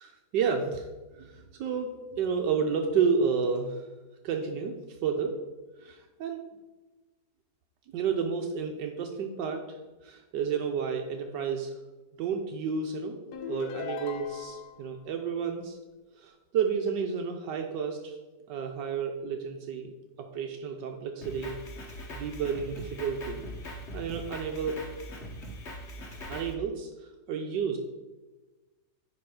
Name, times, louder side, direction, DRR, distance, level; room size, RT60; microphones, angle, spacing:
voice 1, 0.0-0.9 1.1-3.9 4.2-4.7 5.0-5.4 5.8-6.4 7.9-9.7 10.0-11.8 12.2-13.2 13.5-15.8 16.1-18.2 18.5-19.9 20.2-21.6 22.1-24.8 26.3-27.8, right 6 dB, 80° right, 3 dB, 1.3 m, -31 dB
sound 1, 13.3-14.8, left 7 dB, 75° left, 1.3 m, -38 dB
Drum kit, 21.2-26.5, equal, 45° left, 1.2 m, -41 dB
10.5 x 3.5 x 4.8 m, 1.2 s
omnidirectional pair, 1.9 m